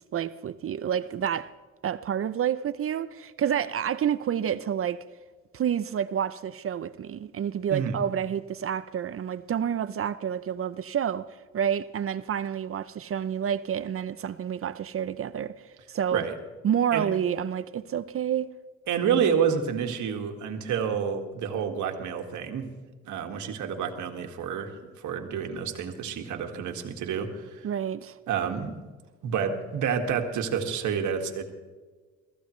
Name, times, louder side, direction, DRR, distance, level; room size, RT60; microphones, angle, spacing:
voice 1, 0.0-1.5 1.8-5.0 5.5-11.3 11.5-16.3 16.6-18.5 27.6-28.2, right 9 dB, 45° right, 0.6 m, -29 dB
voice 2, 18.9-22.7 23.0-27.7 28.3-28.7 29.2-31.4, right 7 dB, 75° right, 1.9 m, -29 dB
22.5 x 14.5 x 3.2 m
cardioid pair, 90°, 30 cm